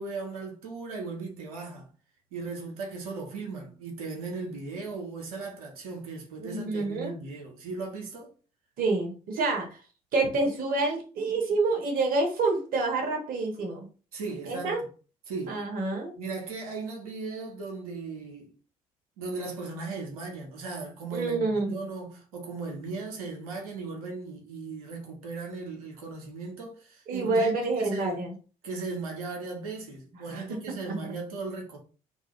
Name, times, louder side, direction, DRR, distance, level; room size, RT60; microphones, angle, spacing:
voice 1, 0.0-1.9 2.3-8.3 14.1-14.8 15.3-15.6 16.2-18.5 19.2-28.2 28.6-31.8, right 4 dB, 75° right, 0.9 m, -37 dB
voice 2, 6.4-7.1 8.8-9.8 10.1-13.9 14.5-14.8 15.5-16.1 21.1-21.7 27.1-28.3 30.3-30.6 30.8-31.1, right 3 dB, 50° right, 1.1 m, -28 dB
2.6 x 2.4 x 3.1 m
figure-of-eight pair, 50°, 19 cm